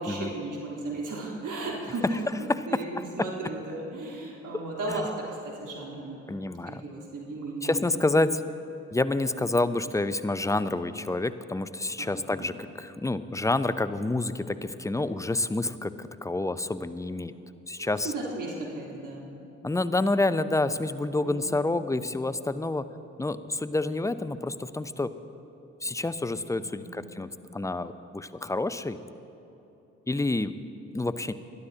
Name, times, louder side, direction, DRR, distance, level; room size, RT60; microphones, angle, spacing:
voice 1, 0.0-6.2 6.7-8.1 12.0-12.5 17.8-19.3 21.2-21.7 26.6-27.0, right 2 dB, 55° right, -3 dB, 3.5 m, -35 dB
voice 2, 2.7-3.0 4.9-5.1 6.3-6.8 7.6-8.4 8.9-17.3 17.7-18.1 19.6-22.9 23.2-25.1 25.8-29.0 30.1-30.5 30.9-31.3, left 2 dB, 10° left, 13 dB, 0.6 m, -28 dB
22.0 x 12.0 x 2.9 m, 2.9 s
hypercardioid pair, 40°, 38 cm